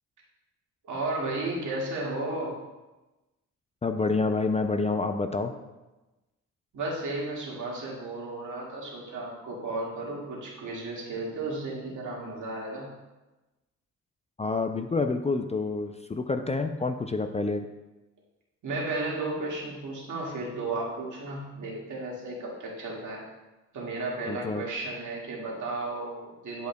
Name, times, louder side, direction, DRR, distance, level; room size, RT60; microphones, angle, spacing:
voice 1, 0.8-2.6 6.7-12.9 18.6-23.2 23.7-26.7, right 2 dB, 75° right, -4 dB, 2.0 m, -34 dB
voice 2, 3.8-5.5 14.4-17.7 24.3-24.6, left 3 dB, 20° left, 7 dB, 0.4 m, -28 dB
10.5 x 5.2 x 2.3 m, 1.1 s
cardioid pair, 80°, 31 cm